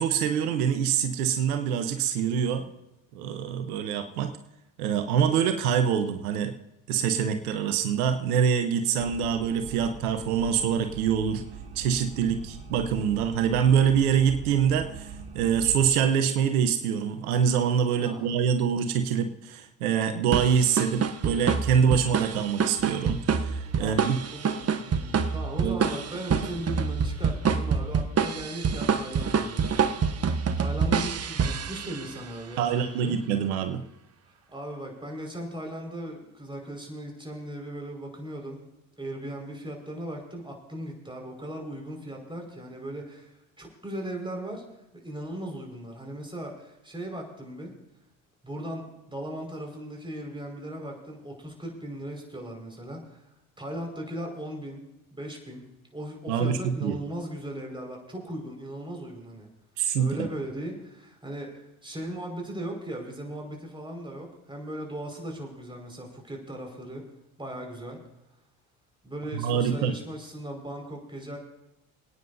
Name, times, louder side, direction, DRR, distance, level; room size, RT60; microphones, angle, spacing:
voice 1, 0.0-2.6 3.1-4.3 4.8-6.5 6.9-11.4 11.8-24.2 25.6-25.8 32.6-33.8 56.3-57.0 59.8-60.3 69.3-69.9, right 7 dB, 85° right, 7 dB, 1.0 m, -25 dB
sound 1, 9.0-15.9, right 5 dB, 65° right, 3.0 m, -42 dB
voice 2, 18.0-18.3 23.8-33.2 34.5-38.6 39.0-44.6 44.9-47.7 48.4-53.2 53.6-54.8 55.1-59.5 60.0-67.0 67.4-68.0 69.0-71.4, right 1 dB, 10° right, 1 dB, 5.1 m, -38 dB
sound 2, 20.3-32.3, right 6 dB, 35° right, 1.1 m, -27 dB
27.5 x 9.6 x 2.7 m, 0.91 s
hypercardioid pair, 70°, 43 cm